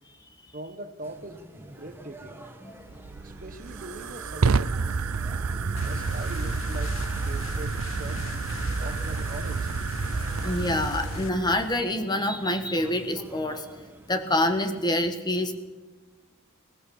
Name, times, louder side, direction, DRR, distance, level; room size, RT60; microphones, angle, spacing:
voice 1, 0.5-2.4 3.2-4.8 5.8-7.0 7.2-8.3 8.8-9.7, right 2 dB, 40° right, 9 dB, 1.2 m, -41 dB
sound 1, 1.0-14.9, right 1 dB, 10° right, 1.6 m, -48 dB
Fire, 2.9-11.8, right 4 dB, 85° right, 0.6 m, -29 dB
sound 2, 5.8-11.3, left 3 dB, 65° left, 1.1 m, -37 dB
voice 2, 10.4-13.7 14.1-15.5, left 1 dB, 20° left, 7 dB, 1.5 m, -26 dB
21.0 x 19.0 x 7.1 m, 1.2 s
head